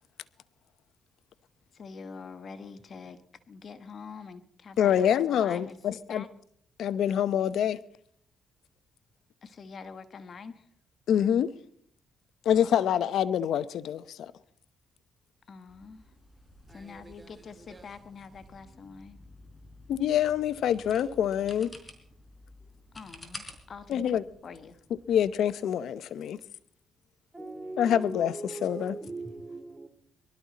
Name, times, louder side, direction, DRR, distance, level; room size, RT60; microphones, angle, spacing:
voice 1, 1.7-3.2 3.5-6.3 9.4-10.7 12.5-13.1 15.5-16.0 16.7-19.2 22.9-24.8, left 5 dB, 50° left, 1.3 m, -45 dB
voice 2, 4.8-6.2 6.8-7.8 11.1-11.5 12.4-14.3 19.9-21.7 23.9-24.2 25.1-26.4 27.8-29.0, left 9 dB, 75° left, 0.7 m, -26 dB
sound 1, 15.7-25.3, left 1 dB, 15° left, 4.3 m, -51 dB
voice 3, 16.7-17.3 17.7-17.8 27.3-29.9, right 2 dB, 15° right, 2.7 m, -41 dB
23.5 x 13.0 x 4.1 m
cardioid pair, 90°, 0 cm